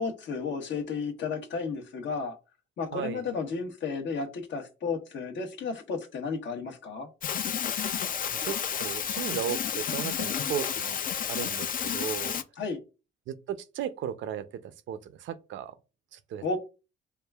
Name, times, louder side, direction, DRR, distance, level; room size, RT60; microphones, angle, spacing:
voice 1, 0.0-2.4 2.8-7.1 12.6-12.8 16.4-16.6, left 4 dB, 65° left, 1.0 m, -33 dB
voice 2, 2.9-3.2 8.4-11.0 11.3-12.4 13.3-15.7 16.1-16.4, right 9 dB, 70° right, 0.5 m, -36 dB
sound 1, 7.2-12.4, left 8 dB, 45° left, 0.4 m, -31 dB
6.7 x 2.4 x 2.3 m
cardioid pair, 90°, 20 cm